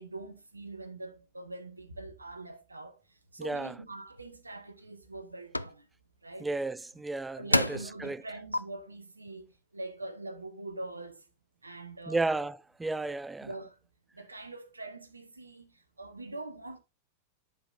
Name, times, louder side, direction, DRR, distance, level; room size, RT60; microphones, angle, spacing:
voice 1, 0.0-3.0 3.3-5.8 6.2-6.5 7.4-9.4 9.7-11.2 11.6-12.2 13.4-13.8 14.1-16.8, right 2 dB, 80° right, 1.0 m, -43 dB
voice 2, 3.4-3.7 6.4-8.2 12.1-13.5, right 3 dB, 10° right, 0.3 m, -33 dB
sound 1, 4.1-4.3 4.8-5.2 5.5-5.7 6.9-7.0 7.5-8.0 8.5-8.6, left 1 dB, 85° left, 0.3 m, -28 dB
10.5 x 5.0 x 2.4 m
figure-of-eight pair, 90°, 0 cm